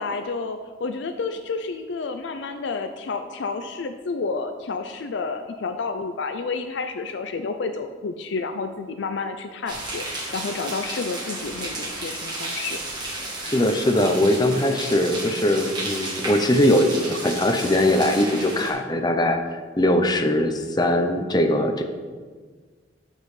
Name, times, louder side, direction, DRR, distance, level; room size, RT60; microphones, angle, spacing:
voice 1, 0.0-10.0 10.3-12.8, left 4 dB, 75° left, 7 dB, 0.4 m, -30 dB
sound 1, 9.7-18.7, right 2 dB, 25° right, 1.4 m, -33 dB
voice 2, 13.4-19.4 19.8-21.8, left 1 dB, 20° left, 5 dB, 0.6 m, -21 dB
12.0 x 5.4 x 3.3 m, 1.5 s
head